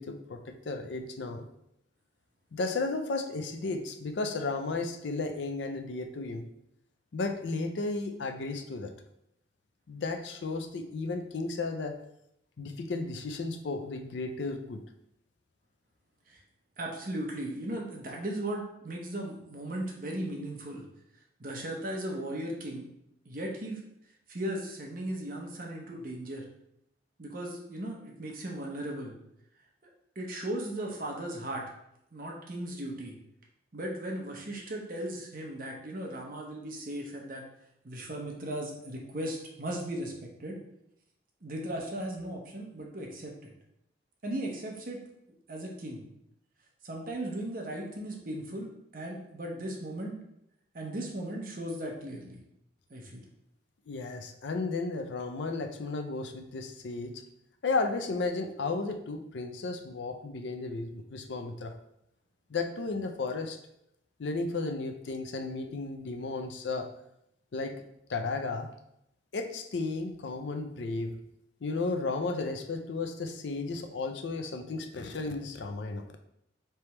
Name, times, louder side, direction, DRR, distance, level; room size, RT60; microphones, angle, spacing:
voice 1, 0.0-1.4 2.5-6.4 7.1-8.9 9.9-12.0 12.6-14.8 53.9-57.2 57.6-61.7 62.5-63.6 64.2-66.9 67.5-67.8 68.1-68.7 69.3-71.1 71.6-76.0, left 3 dB, 70° left, 6 dB, 0.5 m, -34 dB
voice 2, 16.8-20.9 21.4-22.9 23.2-23.8 24.3-26.5 27.2-29.2 30.2-31.7 32.1-33.2 33.7-37.4 37.8-40.6 41.4-43.5 44.2-45.0 45.5-46.1 46.8-50.2 50.7-52.4 52.9-53.2, right 1 dB, 50° right, 0 dB, 0.8 m, -37 dB
3.4 x 2.9 x 4.4 m, 0.78 s
head